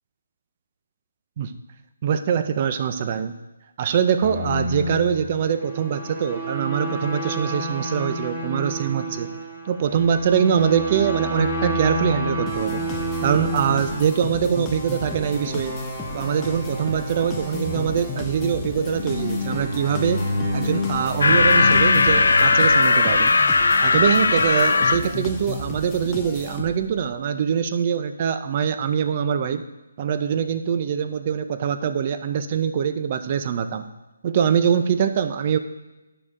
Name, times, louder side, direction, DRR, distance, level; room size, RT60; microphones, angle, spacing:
voice 1, 2.0-3.3 3.8-9.3 9.7-12.8 13.2-15.8 16.1-20.2 20.5-23.3 23.8-29.6 30.0-33.8 34.2-35.6, right 7 dB, 30° right, 10 dB, 0.5 m, -23 dB
sound 1, 4.2-23.0, equal, 10° right, 1.7 m, -29 dB
sound 2, 12.5-27.0, left 3 dB, 10° left, 0.7 m, -34 dB
sound 3, 21.2-25.0, left 3 dB, 75° left, 0.7 m, -17 dB
9.9 x 6.4 x 3.7 m, 1.1 s
hypercardioid pair, 170°, 0 cm